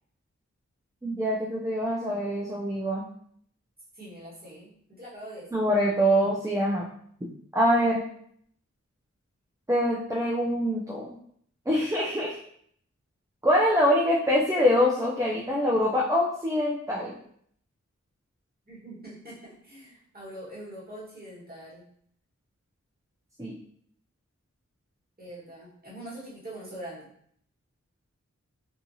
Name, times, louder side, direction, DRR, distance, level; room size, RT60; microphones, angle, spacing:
voice 1, 1.0-3.0 5.5-6.8 7.5-8.0 9.7-11.2 11.7-12.4 13.4-17.2 23.4-23.5, equal, 10° right, -4 dB, 0.4 m, -24 dB
voice 2, 3.9-5.5 18.7-21.8 25.2-27.1, right 1 dB, 30° right, -7 dB, 1.4 m, -43 dB
2.7 x 2.4 x 2.6 m, 0.65 s
wide cardioid pair, 50°, 30 cm